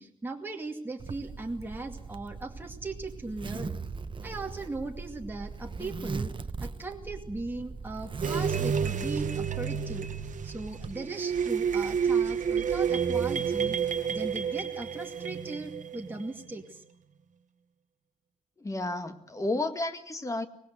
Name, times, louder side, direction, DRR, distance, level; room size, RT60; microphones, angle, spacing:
voice 1, 0.0-3.8 4.2-6.3 6.6-10.1 10.4-16.8, right 2 dB, 15° right, 2 dB, 2.3 m, -38 dB
Zipper (clothing), 1.0-10.9, right 4 dB, 35° right, 0.9 m, -40 dB
sound 1, 8.2-16.3, right 7 dB, 70° right, 1.3 m, -30 dB
voice 2, 18.6-20.5, left 2 dB, 25° left, 8 dB, 1.9 m, -32 dB
25.0 x 19.5 x 8.0 m, 0.70 s
wide cardioid pair, 150°, 14 cm